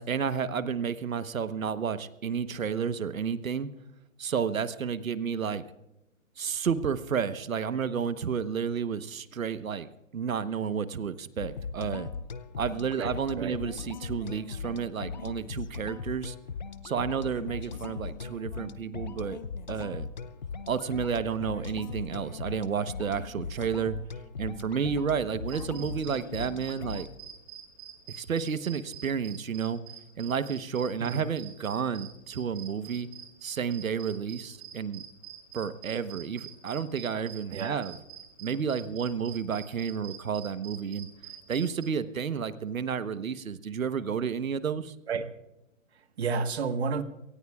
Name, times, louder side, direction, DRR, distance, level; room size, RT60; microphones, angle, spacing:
voice 1, 0.0-3.7 4.2-5.6 6.4-9.9 10.1-12.1 12.6-16.3 16.8-19.4 19.7-20.1 20.7-24.0 24.4-27.1 28.1-29.8 30.2-33.1 33.4-35.0 35.5-38.0 38.4-41.1 41.5-44.9, right 6 dB, 85° right, 12 dB, 1.2 m, -31 dB
sound 1, 11.4-27.1, left 5 dB, 35° left, 0.6 m, -39 dB
voice 2, 13.0-13.6 31.0-31.3 37.5-37.9 45.1-45.3 45.9-47.0, right 5 dB, 50° right, 9 dB, 1.5 m, -31 dB
sound 2, 25.5-41.9, right 9 dB, 30° right, 4.6 m, -47 dB
28.0 x 18.5 x 2.4 m, 0.90 s
hypercardioid pair, 165°, 40 cm